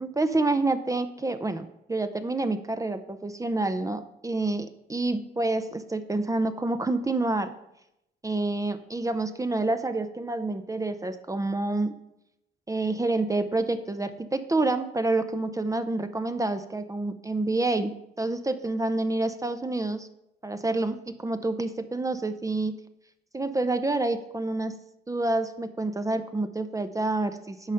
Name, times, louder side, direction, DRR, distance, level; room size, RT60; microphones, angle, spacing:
voice 1, 0.0-7.5 8.2-11.9 12.7-20.1 20.4-22.7 23.3-24.8 25.1-27.7, right 2 dB, 15° right, 9 dB, 0.6 m, -28 dB
9.8 x 5.2 x 5.7 m, 0.83 s
cardioid pair, 90°, 20 cm